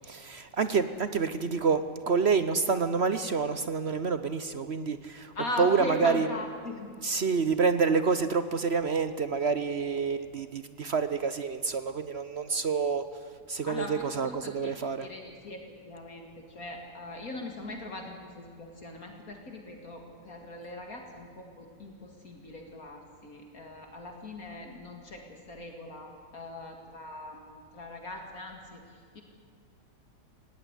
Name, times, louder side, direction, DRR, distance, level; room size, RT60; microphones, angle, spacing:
voice 1, 0.0-6.3 7.0-13.0 13.5-15.1, right 5 dB, 50° right, 12 dB, 0.9 m, -28 dB
voice 2, 5.3-6.9 13.7-14.7 15.0-29.2, left 1 dB, 55° left, 3 dB, 2.6 m, -40 dB
18.5 x 17.5 x 9.8 m, 2.2 s
omnidirectional pair, 1.8 m